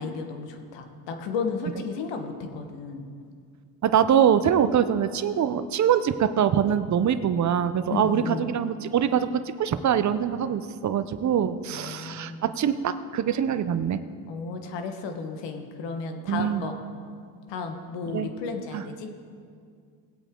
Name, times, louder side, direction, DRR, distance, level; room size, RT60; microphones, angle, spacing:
voice 1, 0.0-3.0 7.9-8.4 11.7-12.4 14.3-16.7 17.5-19.1, left 4 dB, 75° left, 5 dB, 1.4 m, -33 dB
voice 2, 3.8-14.0 16.3-16.6 18.1-18.3 18.7-18.8, right 9 dB, 40° right, 11 dB, 0.7 m, -24 dB
19.0 x 8.2 x 3.8 m, 2.2 s
supercardioid pair, 85°, 44 cm